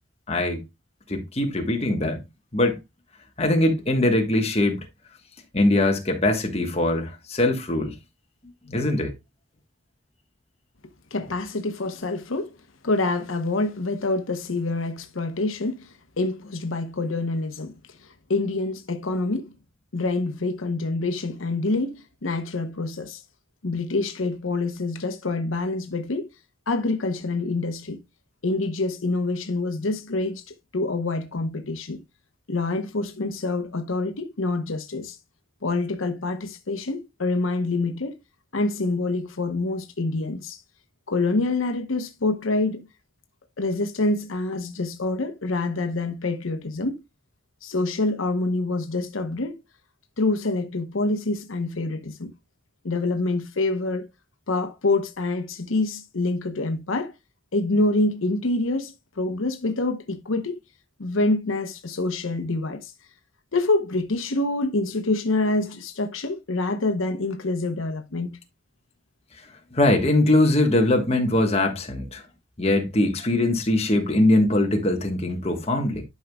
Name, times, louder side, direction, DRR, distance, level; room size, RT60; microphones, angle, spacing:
voice 1, 0.3-0.6 1.1-2.2 2.5-2.8 3.4-4.9 5.5-8.0 8.6-9.1 69.7-72.2 72.6-76.0, left 1 dB, 30° left, 1.4 m, -22 dB
voice 2, 11.1-12.5 12.8-17.7 18.3-19.5 19.9-23.2 23.6-26.3 26.7-28.0 28.4-30.4 30.7-32.0 32.5-35.2 35.6-38.2 38.5-40.6 41.1-42.9 43.6-47.0 47.6-49.6 50.2-52.3 52.8-54.0 54.5-57.1 57.5-60.6 61.0-62.9 63.5-68.4, left 2 dB, 85° left, 0.9 m, -26 dB
11.5 x 5.4 x 2.3 m
head